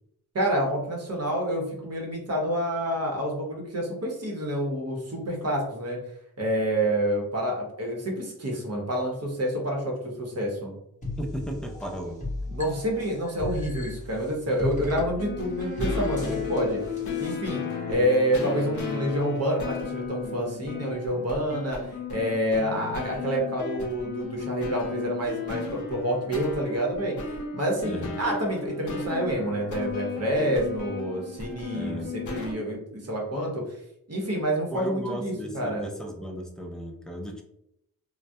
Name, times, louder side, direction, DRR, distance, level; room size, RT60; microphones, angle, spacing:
voice 1, 0.3-6.0 6.4-10.7 12.5-16.8 17.2-17.6 17.9-32.0 32.3-33.8 34.1-35.8, equal, 40° right, -1 dB, 0.9 m, -28 dB
sound 1, 11.0-17.4, left 2 dB, 20° left, 0.9 m, -36 dB
voice 2, 11.2-12.3 14.5-14.7 17.9-18.0 27.8-28.2 31.7-32.1 34.7-37.4, right 1 dB, ahead, 2 dB, 0.4 m, -35 dB
sound 2, 14.8-32.5, left 5 dB, 55° left, 0.6 m, -35 dB
2.2 x 2.1 x 2.6 m, 0.77 s
cardioid pair, 90°, 37 cm